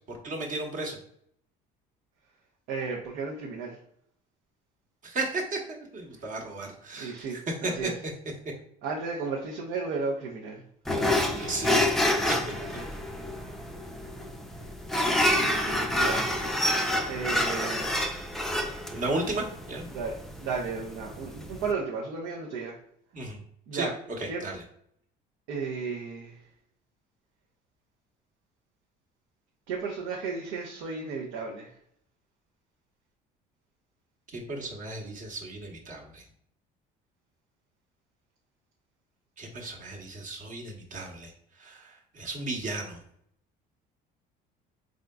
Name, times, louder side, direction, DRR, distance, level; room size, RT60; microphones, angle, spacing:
voice 1, 0.1-1.0 5.0-7.9 11.3-12.0 12.3-12.4 18.9-19.9 23.1-23.4 23.7-23.9 24.2-24.6 34.3-36.2 39.4-41.3 41.6-43.0, right 2 dB, 45° right, 0 dB, 1.0 m, -34 dB
voice 2, 2.7-3.8 7.0-8.0 8.8-10.6 10.9-11.2 12.7-13.0 15.4-16.3 17.1-18.0 19.9-20.1 20.4-22.8 23.7-23.9 24.3-24.4 25.5-26.4 29.7-31.7, right 4 dB, 85° right, -1 dB, 0.7 m, -34 dB
sound 1, 10.9-21.7, left 1 dB, ahead, 0.4 m, -28 dB
3.7 x 3.6 x 2.2 m, 0.69 s
supercardioid pair, 95°, 19 cm